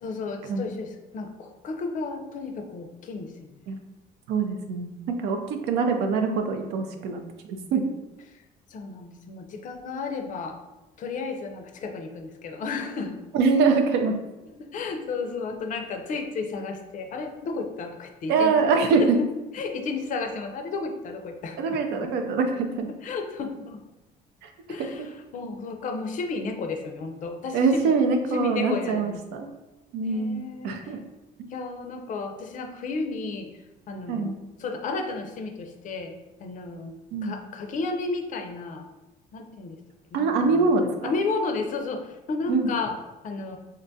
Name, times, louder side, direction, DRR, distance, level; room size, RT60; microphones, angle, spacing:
voice 1, 0.0-3.5 8.7-10.6 11.0-13.2 14.6-18.5 19.0-19.1 19.5-22.1 23.0-23.8 24.7-27.9 28.3-29.2 30.0-30.8 31.5-33.5 33.9-34.3 34.6-36.1 36.4-36.9 37.2-38.8 39.3-39.8 40.1-40.7 41.0-42.9 43.2-43.6, left 4 dB, 50° left, 5 dB, 0.4 m, -33 dB
voice 2, 4.3-4.9 5.2-7.2 7.5-7.8 13.3-14.1 18.3-19.2 21.6-22.9 24.4-24.5 27.5-29.5 29.9-31.0 34.1-34.3 37.1-37.4 40.1-41.2 42.5-42.7, right 4 dB, 85° right, 5 dB, 0.5 m, -24 dB
3.8 x 2.2 x 2.6 m, 1.0 s
cardioid pair, 110°, 17 cm